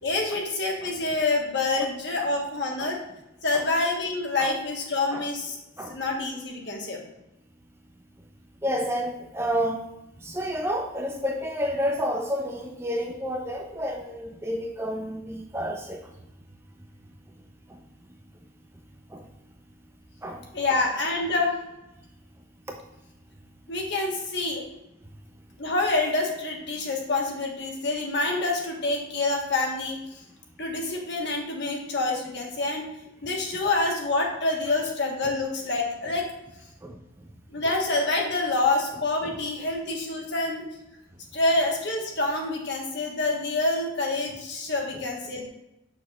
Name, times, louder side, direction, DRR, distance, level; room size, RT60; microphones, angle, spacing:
voice 1, 0.0-3.0 3.4-5.6 5.9-7.0 20.5-21.6 23.7-24.6 25.6-30.0 30.6-32.9 33.2-36.3 37.5-40.6 41.3-45.5, left 2 dB, 55° left, 0 dB, 1.3 m, -27 dB
voice 2, 8.6-9.8 10.2-16.0 17.7-17.8 19.1-19.2 20.2-20.4 36.8-37.0 39.2-39.3 44.9-45.0, equal, 10° right, 2 dB, 0.5 m, -30 dB
7.1 x 6.2 x 2.4 m, 0.90 s
head